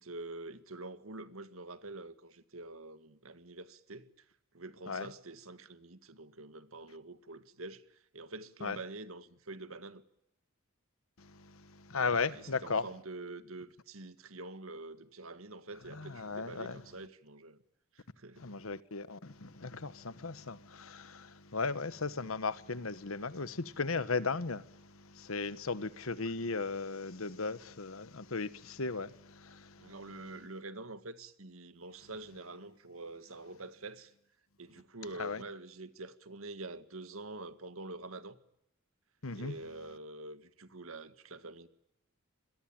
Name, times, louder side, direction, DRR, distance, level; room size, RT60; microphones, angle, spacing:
voice 1, 0.0-4.3 4.5-7.8 8.1-10.0 12.1-17.6 18.0-18.5 26.2-26.3 29.8-34.1 34.6-38.4 39.4-41.7, right 2 dB, 80° right, 1.9 m, -46 dB
voice 2, 11.2-12.9 15.9-16.8 18.4-30.0 35.2-35.4 39.2-39.6, left 4 dB, 80° left, 1.2 m, -36 dB
26.5 x 22.5 x 8.9 m
head